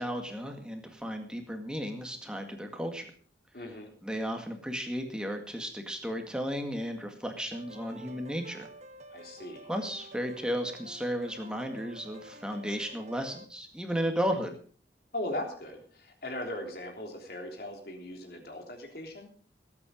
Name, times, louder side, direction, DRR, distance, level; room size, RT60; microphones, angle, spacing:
voice 1, 0.0-3.1 4.0-8.7 9.7-14.6, equal, 5° right, 4 dB, 2.0 m, -34 dB
voice 2, 3.5-3.9 9.1-9.6 15.1-19.3, left 1 dB, 55° left, 2 dB, 3.4 m, -38 dB
sound 1, 7.5-13.4, right 1 dB, 40° right, 1.3 m, -50 dB
18.5 x 8.9 x 5.3 m, 0.43 s
head